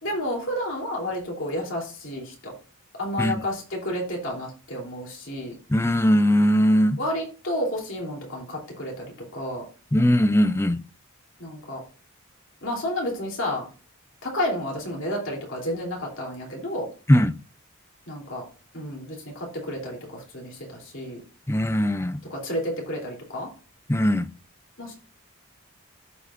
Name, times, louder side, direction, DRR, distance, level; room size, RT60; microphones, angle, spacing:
voice 1, 0.0-2.5 3.0-5.5 7.0-9.1 9.3-9.6 11.4-11.8 12.6-13.7 14.2-16.9 18.1-18.4 18.7-21.2 22.3-23.5 24.8-24.9, left 1 dB, 60° left, 3.1 m, -31 dB
voice 2, 5.7-7.0 9.9-10.8 17.1-17.3 21.5-22.2 23.9-24.3, equal, 10° left, 0.4 m, -20 dB
14.5 x 4.9 x 2.5 m
head